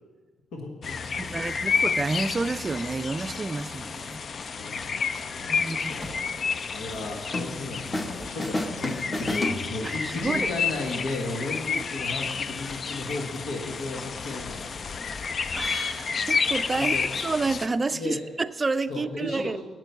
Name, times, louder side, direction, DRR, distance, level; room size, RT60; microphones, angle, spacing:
voice 1, 0.5-1.6 4.5-14.7 16.8-17.1 17.9-18.2 18.9-19.6, left 2 dB, 85° left, 1.4 m, -35 dB
sound 1, 0.8-17.7, left 5 dB, 50° left, 0.4 m, -30 dB
voice 2, 1.2-4.2 5.5-5.9 10.0-10.5 11.8-11.9 15.5-19.6, right 3 dB, 30° right, 0.4 m, -29 dB
sound 2, 6.0-6.3 6.9-7.2 8.1-8.5 8.7-8.9 9.2-9.5, equal, 5° left, 1.2 m, -45 dB
sound 3, 7.3-8.1 8.4-10.2, left 1 dB, 20° left, 0.9 m, -31 dB
9.0 x 6.2 x 8.0 m
cardioid pair, 85°, 0 cm